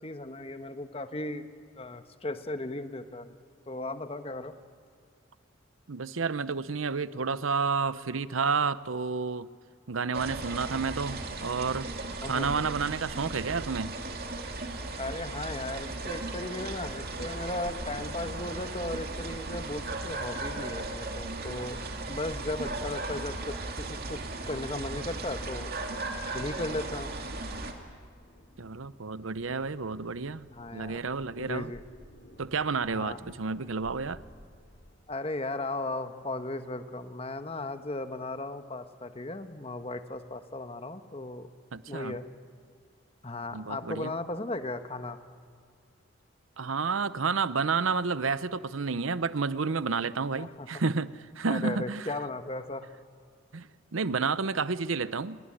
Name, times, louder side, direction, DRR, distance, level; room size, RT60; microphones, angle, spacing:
voice 1, 0.0-1.5 1.7-3.3 3.7-4.5 11.5-11.6 12.2-12.5 15.0-21.8 22.0-24.2 24.5-25.7 26.3-27.1 30.5-31.0 31.4-31.8 32.9-33.2 35.1-41.5 41.9-42.2 43.2-45.2 50.4-50.7 51.5-52.9, left 2 dB, 30° left, 1.3 m, -36 dB
voice 2, 5.9-9.5 9.9-11.9 12.3-14.0 28.6-30.5 30.7-31.7 32.4-34.2 41.7-42.2 43.5-44.1 46.6-52.1 53.5-55.4, right 4 dB, 90° right, 0.8 m, -30 dB
sound 1, 10.1-27.7, right 2 dB, 50° right, 2.6 m, -36 dB
sound 2, 21.2-35.0, equal, 55° left, 3.5 m, -57 dB
28.5 x 19.5 x 10.0 m
head